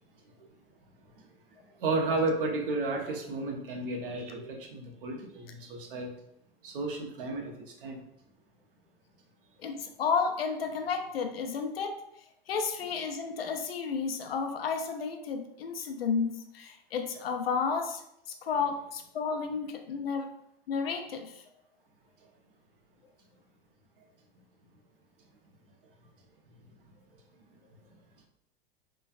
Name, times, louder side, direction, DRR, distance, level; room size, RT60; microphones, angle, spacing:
voice 1, 1.8-6.1 6.6-7.5 7.8-8.0, right 2 dB, 65° right, 2 dB, 0.7 m, -32 dB
voice 2, 9.6-11.9 12.5-18.0 18.3-20.3 20.7-21.4, left 5 dB, 80° left, 5 dB, 0.5 m, -32 dB
3.1 x 2.3 x 2.4 m, 0.78 s
figure-of-eight pair, 90°, 29 cm